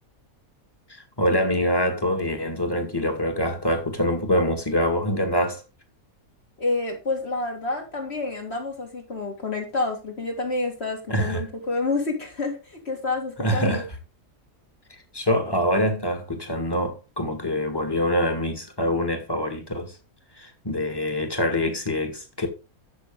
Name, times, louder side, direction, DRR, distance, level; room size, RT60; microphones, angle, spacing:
voice 1, 0.9-5.6 11.1-11.4 13.4-13.9 15.1-19.9 20.4-22.5, equal, 15° left, 2.0 m, -25 dB
voice 2, 6.6-13.8, left 3 dB, 45° left, 2.7 m, -28 dB
12.5 x 6.2 x 3.8 m
omnidirectional pair, 1.5 m